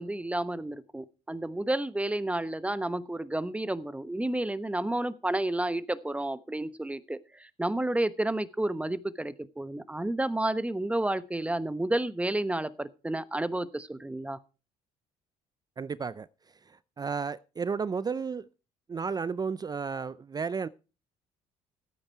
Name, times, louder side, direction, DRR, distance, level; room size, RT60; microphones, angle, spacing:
voice 1, 0.0-14.4, right 1 dB, 10° right, 1.0 m, -31 dB
voice 2, 15.8-16.3 17.0-18.4 18.9-20.7, right 5 dB, 25° right, 0.5 m, -32 dB
14.0 x 8.9 x 4.6 m
supercardioid pair, 75°, 15 cm